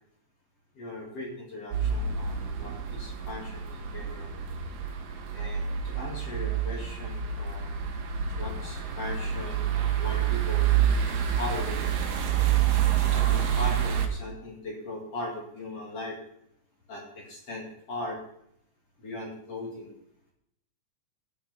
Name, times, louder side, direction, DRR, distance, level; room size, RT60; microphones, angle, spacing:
voice 1, 0.7-4.3 5.3-7.8 8.4-10.7 11.4-11.8 13.1-16.2 16.9-18.2 19.0-19.9, left 2 dB, 45° left, -2 dB, 3.1 m, -39 dB
sound 1, 1.7-14.1, right 9 dB, 75° right, 3.0 m, -28 dB
12.0 x 8.4 x 5.7 m, 0.75 s
omnidirectional pair, 4.0 m